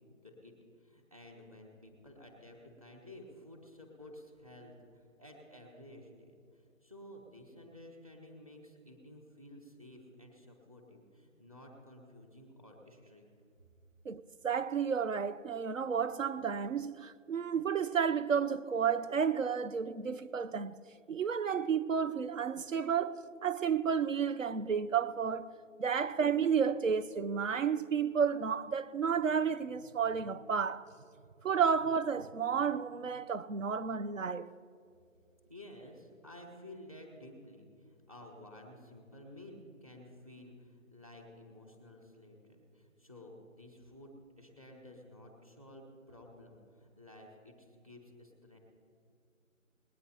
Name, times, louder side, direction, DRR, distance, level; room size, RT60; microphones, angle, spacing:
voice 1, 0.1-0.5 0.8-13.2 35.5-48.6, left 1 dB, 25° right, 1.2 m, -53 dB
voice 2, 14.1-20.8 21.1-25.5 25.8-30.9 31.4-34.5, right 6 dB, 70° right, 0.6 m, -32 dB
19.0 x 9.5 x 4.2 m
figure-of-eight pair, 180°, 40 cm